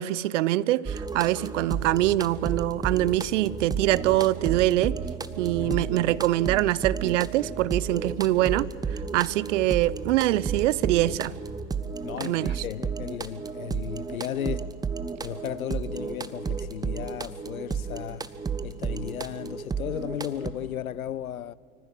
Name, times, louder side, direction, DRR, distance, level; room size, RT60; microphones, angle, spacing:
voice 1, 0.0-5.0 5.4-11.3 12.2-12.6, right 15 dB, 60° right, 0.6 m, -24 dB
sound 1, 0.9-20.5, right 5 dB, 10° right, 0.7 m, -33 dB
voice 2, 5.6-5.9 12.0-14.7 15.2-18.3 18.6-21.5, left 11 dB, 90° left, 0.6 m, -35 dB
25.0 x 15.0 x 7.7 m
hypercardioid pair, 95°, 41 cm